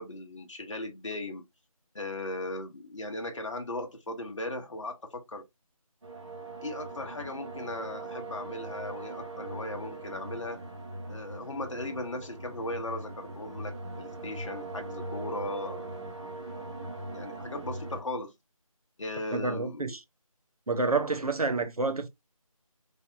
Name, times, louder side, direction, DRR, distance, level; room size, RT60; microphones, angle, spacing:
voice 1, 0.0-1.4 1.9-5.5 6.6-10.6 11.1-16.1 17.1-18.3 19.0-19.9, left 2 dB, 55° left, 0.7 m, -37 dB
sound 1, 6.0-18.0, right 2 dB, 50° right, 1.1 m, -40 dB
voice 2, 19.3-20.0 20.7-22.1, right 3 dB, 85° right, 0.8 m, -28 dB
3.2 x 2.7 x 2.6 m
figure-of-eight pair, 165°, 19 cm